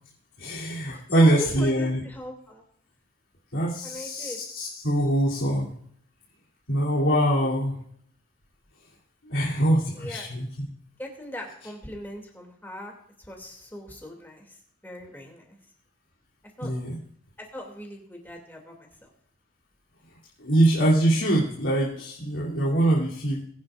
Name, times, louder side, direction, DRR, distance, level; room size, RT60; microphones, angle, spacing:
voice 1, 0.4-2.0 3.5-5.7 6.7-7.7 9.2-10.7 16.6-17.0 20.4-23.4, right 1 dB, 80° left, -8 dB, 3.1 m, -23 dB
voice 2, 0.9-2.6 3.8-4.4 7.1-7.5 9.9-10.3 11.0-14.6 14.8-15.6 16.6-16.7 17.4-19.1, left 1 dB, 10° left, 1 dB, 2.6 m, -40 dB
21.5 x 10.5 x 2.5 m, 0.67 s
head